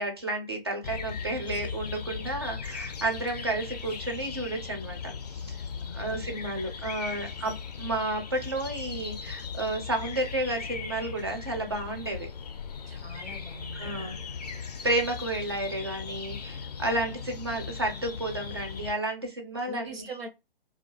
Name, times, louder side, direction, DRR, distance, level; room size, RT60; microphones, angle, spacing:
voice 1, 0.0-5.6 5.9-12.3 13.8-14.2 14.8-20.0, right 2 dB, 30° right, 0.4 m, -31 dB
sound 1, 0.8-18.9, left 6 dB, 45° left, 0.4 m, -38 dB
voice 2, 5.8-6.5 12.9-14.3 19.7-20.3, right 2 dB, 85° right, 0.8 m, -43 dB
2.3 x 2.2 x 2.5 m
figure-of-eight pair, 135°, 29 cm